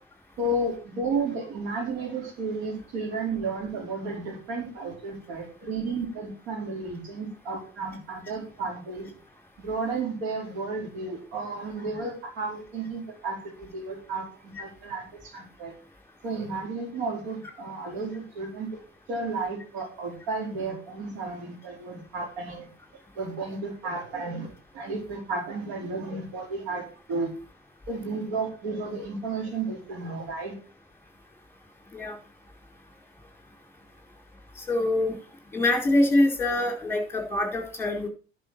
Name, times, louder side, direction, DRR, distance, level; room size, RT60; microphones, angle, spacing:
voice 1, 0.4-9.1 9.6-15.7 16.2-18.8 19.1-22.7 23.1-27.3 27.9-30.5, right 3 dB, 65° right, 1 dB, 4.4 m, -33 dB
voice 2, 34.7-35.1 35.5-38.1, left 1 dB, 5° left, 2 dB, 4.6 m, -24 dB
11.0 x 6.2 x 6.1 m, 0.36 s
figure-of-eight pair, 65°, 31 cm